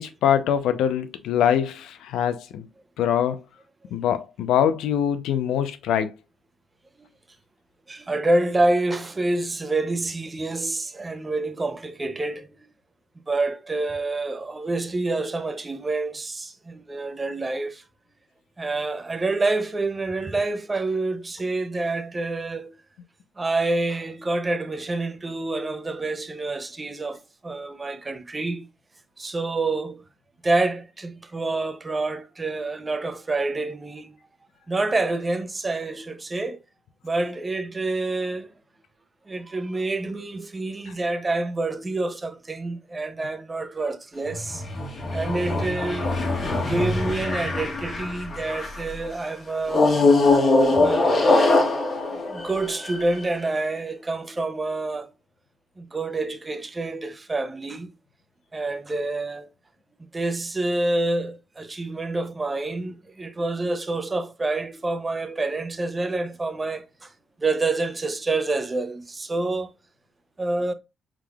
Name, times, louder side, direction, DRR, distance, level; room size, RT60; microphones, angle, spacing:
voice 1, 0.0-2.7 3.0-3.4 3.9-6.1 40.9-41.0, left 9 dB, 85° left, 0.5 m, -23 dB
voice 2, 7.9-12.6 13.3-17.8 18.6-22.7 23.4-28.7 29.2-30.0 30.4-34.2 34.7-36.6 37.0-38.5 39.3-44.7 45.0-46.1 46.7-50.1 50.7-51.8 52.1-55.1 55.8-57.9 58.5-59.5 60.1-67.1 67.4-69.7 70.4-70.7, right 2 dB, 25° right, 0.6 m, -27 dB
sound 1, 44.2-48.9 49.7-53.3, left 2 dB, 45° left, 1.4 m, -22 dB
4.9 x 3.6 x 2.3 m
cardioid pair, 90°, 0 cm